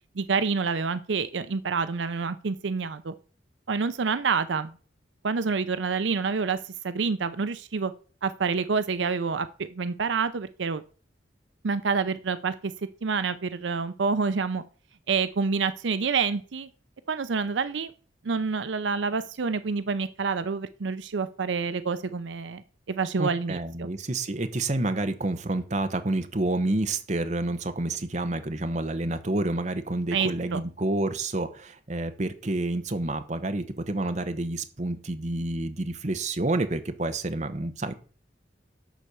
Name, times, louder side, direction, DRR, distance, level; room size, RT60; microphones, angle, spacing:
voice 1, 0.1-3.1 3.7-4.8 5.2-6.6 6.8-7.9 8.2-10.8 11.6-12.7 13.0-14.6 15.1-16.7 17.1-17.9 18.2-23.9 30.1-30.6, right 5 dB, 85° right, 12 dB, 0.6 m, -28 dB
voice 2, 23.2-37.9, right 2 dB, 40° right, 8 dB, 1.0 m, -29 dB
11.0 x 4.3 x 6.8 m, 0.40 s
head